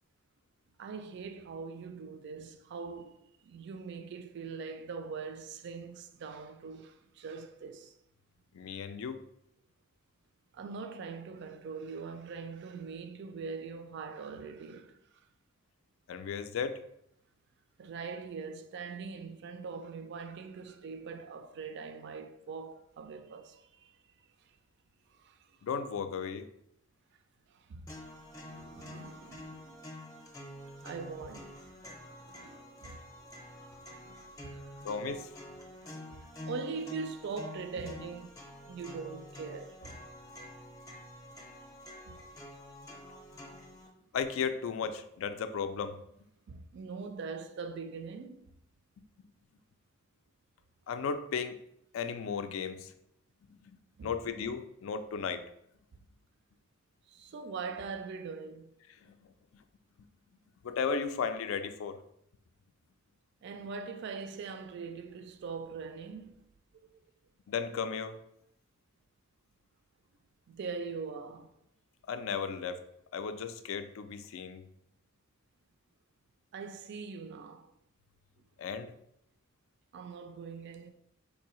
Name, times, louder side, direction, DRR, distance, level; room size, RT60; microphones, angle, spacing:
voice 1, 0.8-3.2 3.4-7.9 10.5-15.0 17.8-23.9 25.2-25.4 27.5-29.9 30.8-33.0 33.4-34.9 35.8-38.3 38.7-40.1 42.1-42.2 46.5-48.5 54.0-54.1 57.1-58.7 63.4-66.4 66.9-67.0 70.5-71.5 76.5-77.7 79.9-80.9, right 5 dB, 60° right, 0.3 m, -42 dB
voice 2, 8.5-9.2 16.1-16.8 25.6-26.5 34.8-35.3 44.1-46.0 50.9-51.6 51.9-52.9 54.0-55.4 59.0-59.1 60.6-62.0 67.5-68.2 72.1-72.8 73.1-74.6 78.6-78.9, left 6 dB, 75° left, 0.3 m, -35 dB
sound 1, 27.9-43.9, left 1 dB, 15° left, 0.6 m, -48 dB
4.0 x 2.6 x 2.9 m
head